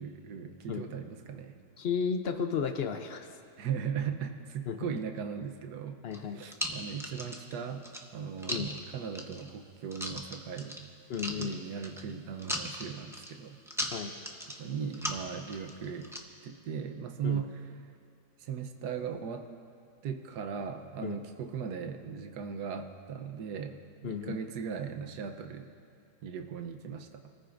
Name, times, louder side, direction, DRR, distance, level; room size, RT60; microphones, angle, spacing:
voice 1, 0.0-1.6 3.6-6.0 6.3-7.9 8.1-10.9 11.4-13.6 14.6-16.1 16.4-17.5 18.4-19.5 20.0-25.7 26.2-27.2, right 7 dB, 75° right, 5 dB, 1.4 m, -38 dB
voice 2, 1.8-3.3 4.7-4.9 6.0-6.4 8.5-8.7 11.1-11.6 13.9-14.1 17.2-17.4 21.0-21.2 24.0-24.4, left 6 dB, 65° left, 6 dB, 0.6 m, -33 dB
sound 1, 6.1-7.5 7.8-8.8 9.2-9.5 9.9-10.9 11.1-12.1 12.4-13.3 13.7-14.6 14.9-16.2, equal, 5° right, 0.4 m, -37 dB
25.0 x 14.5 x 2.6 m, 2.4 s
omnidirectional pair, 1.8 m